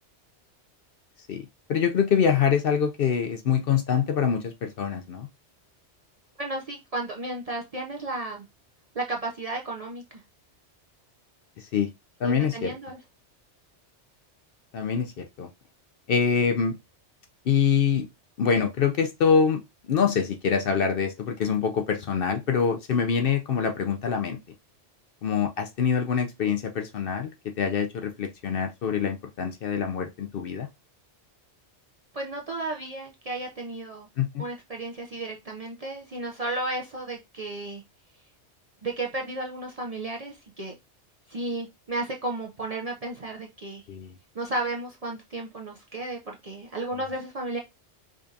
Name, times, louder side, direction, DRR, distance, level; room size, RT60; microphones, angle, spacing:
voice 1, 1.7-5.3 11.6-11.9 12.2-12.7 14.7-15.5 16.1-16.8 17.5-18.1 18.4-19.6 19.9-24.4 25.2-27.3 27.6-30.7 34.2-34.4 43.9-44.1, left 7 dB, 60° left, 0.7 m, -25 dB
voice 2, 6.4-8.4 8.9-10.0 12.2-13.0 32.1-34.1 34.4-37.8 38.8-40.8 41.3-43.8 44.3-47.6, right 2 dB, 45° right, 0.5 m, -33 dB
5.0 x 2.6 x 2.4 m
omnidirectional pair, 1.2 m